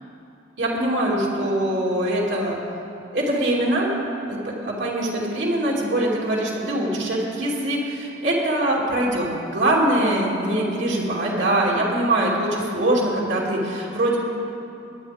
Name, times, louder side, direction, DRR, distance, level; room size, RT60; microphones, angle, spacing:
voice 1, 0.6-2.6 3.1-3.9 4.3-14.2, right 1 dB, 65° right, -4 dB, 2.7 m, -23 dB
21.5 x 10.0 x 3.6 m, 2.8 s
head